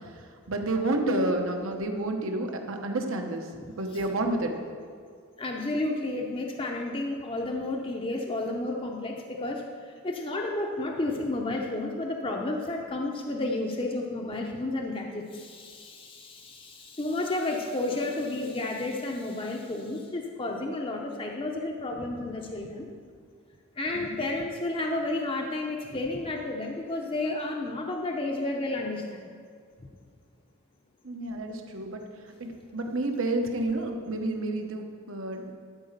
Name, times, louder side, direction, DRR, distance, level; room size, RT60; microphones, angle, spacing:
voice 1, 0.5-3.4 3.8-4.5 23.9-24.2 31.0-32.0 32.4-35.4, right 2 dB, 65° right, 4 dB, 1.0 m, -30 dB
voice 2, 1.0-1.4 5.4-22.9 23.8-29.2 29.8-29.9, left 2 dB, 25° left, 0 dB, 0.7 m, -31 dB
12.0 x 4.9 x 6.6 m, 2.1 s
head